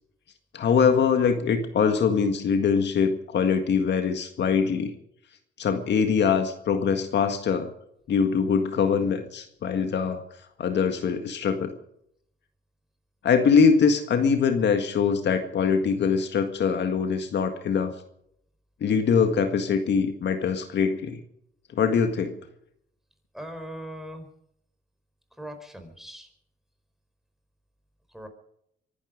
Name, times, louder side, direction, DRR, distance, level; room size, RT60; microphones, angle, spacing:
voice 1, 0.5-4.9 5.6-7.7 8.1-10.2 10.6-11.8 13.2-17.9 18.8-21.2 21.7-22.4, left 6 dB, 60° left, 7 dB, 1.8 m, -23 dB
voice 2, 23.3-24.3 25.4-26.3 28.1-28.3, equal, ahead, 6 dB, 4.5 m, -39 dB
24.5 x 11.5 x 5.1 m, 0.73 s
cardioid pair, 90°, 20 cm